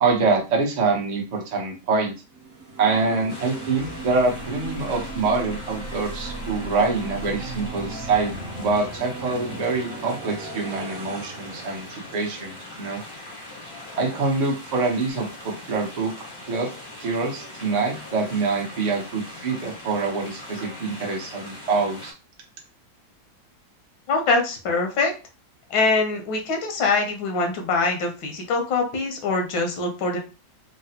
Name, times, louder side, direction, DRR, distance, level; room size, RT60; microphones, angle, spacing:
voice 1, 0.0-2.1 2.8-13.0 14.0-16.1 16.4-16.7 17.0-22.1, right 4 dB, 85° right, -1 dB, 0.3 m, -25 dB
sound 1, 2.3-12.5, right 3 dB, 55° right, 0.7 m, -37 dB
sound 2, 3.3-22.1, left 1 dB, 35° left, 0.3 m, -41 dB
voice 2, 24.1-25.1 25.7-30.2, left 3 dB, 85° left, 2 dB, 1.5 m, -23 dB
3.8 x 2.0 x 2.8 m, 0.32 s
omnidirectional pair, 2.0 m